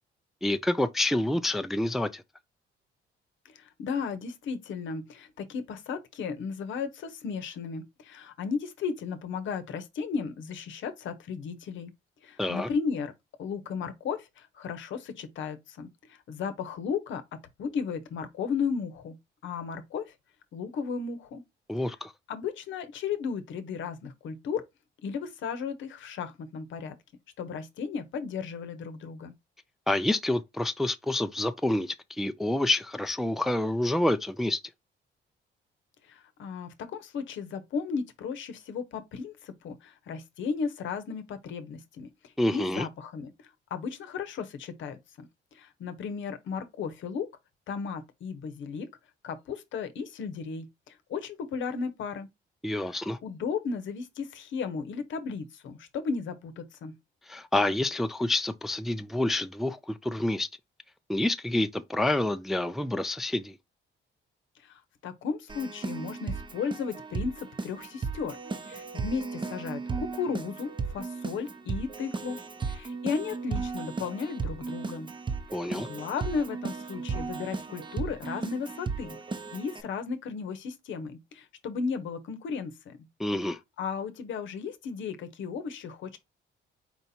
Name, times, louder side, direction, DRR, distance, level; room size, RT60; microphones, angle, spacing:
voice 1, 0.4-2.2 12.4-12.7 21.7-22.1 29.9-34.6 42.4-42.9 52.6-53.2 57.3-60.5 61.1-63.6 75.5-75.9 83.2-83.6, left 1 dB, ahead, 0.3 m, -28 dB
voice 2, 3.5-11.9 12.2-13.1 13.4-19.2 19.4-20.0 20.5-21.4 22.3-24.6 25.0-26.9 27.4-29.3 36.1-42.1 42.5-43.3 43.7-45.3 45.5-47.3 47.7-48.9 49.2-52.3 52.9-56.9 64.6-68.4 68.6-72.4 72.6-75.1 75.7-79.2 79.5-83.0 83.8-86.2, left 5 dB, 75° left, 0.8 m, -35 dB
Keyboard (musical), 65.5-79.8, right 4 dB, 25° right, 0.7 m, -35 dB
4.5 x 2.7 x 4.1 m
cardioid pair, 90°, 20 cm